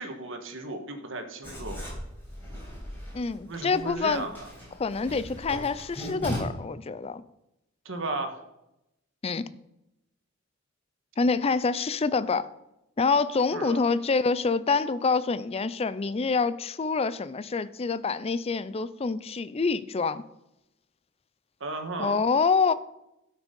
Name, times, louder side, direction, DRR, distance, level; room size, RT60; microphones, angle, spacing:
voice 1, 0.0-1.8 3.5-4.5 7.8-8.4 13.5-13.8 21.6-22.2, right 2 dB, 60° right, 6 dB, 1.4 m, -35 dB
Writing, 1.4-6.4, equal, 10° left, 4.8 m, -39 dB
voice 2, 3.1-4.3 4.8-7.2 9.2-9.5 11.2-12.5 13.0-20.2 22.0-22.7, left 4 dB, 30° left, 16 dB, 0.4 m, -26 dB
12.5 x 6.3 x 5.2 m, 0.88 s
head